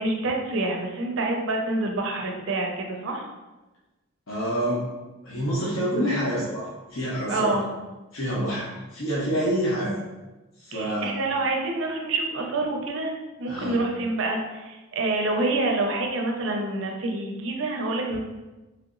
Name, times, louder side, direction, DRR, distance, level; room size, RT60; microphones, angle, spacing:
voice 1, 0.0-3.3 7.3-7.6 10.7-18.2, right 2 dB, 60° right, 2 dB, 0.5 m, -27 dB
voice 2, 4.3-4.8 5.2-7.6 8.1-9.9 10.6-11.1 13.5-13.8, equal, 65° left, -7 dB, 0.7 m, -27 dB
3.2 x 2.8 x 2.5 m, 1.1 s
head